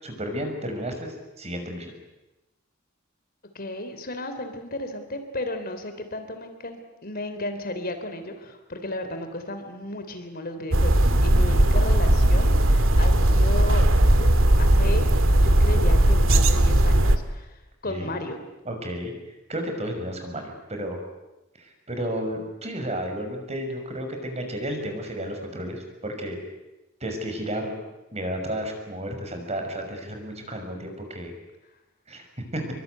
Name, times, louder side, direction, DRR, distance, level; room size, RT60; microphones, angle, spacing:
voice 1, 0.0-1.9 17.8-18.1 18.6-21.0 21.6-26.4 27.0-27.7 28.1-31.3 32.1-32.3 32.5-32.6, equal, 35° right, 4 dB, 6.2 m, -32 dB
voice 2, 3.5-13.8 14.2-15.1 15.4-18.4, left 2 dB, 50° left, 7 dB, 3.3 m, -34 dB
sound 1, 10.7-17.2, right 1 dB, 80° right, 2.1 m, -18 dB
26.5 x 24.0 x 9.4 m, 1.0 s
head